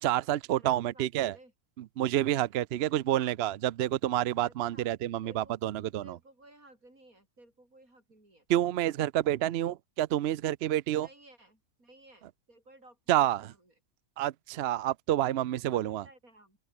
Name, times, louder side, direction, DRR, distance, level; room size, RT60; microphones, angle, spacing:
voice 1, 0.0-1.4 2.0-6.0 8.5-11.1 13.1-13.5 14.2-16.0, right 13 dB, 60° right, 0.7 m, -28 dB
voice 2, 0.5-1.5 2.8-3.4 4.4-4.9 5.2-5.6 6.0-8.5 11.0-13.7 15.3-16.6, right 1 dB, 80° right, 8.6 m, -57 dB
open air
omnidirectional pair, 1.5 m